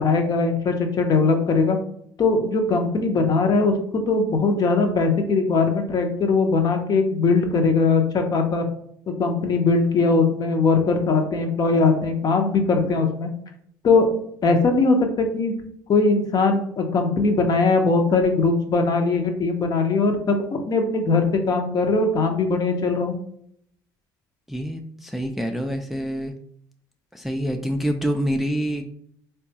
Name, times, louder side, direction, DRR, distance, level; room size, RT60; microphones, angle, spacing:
voice 1, 0.0-1.8 2.2-8.7 9.2-13.3 13.8-14.1 14.4-15.5 15.9-23.2, left 3 dB, 45° left, 4 dB, 0.7 m, -20 dB
voice 2, 24.5-26.3 27.1-28.8, equal, 5° right, 4 dB, 0.3 m, -26 dB
3.6 x 2.2 x 2.8 m, 0.68 s
hypercardioid pair, 70°, 9 cm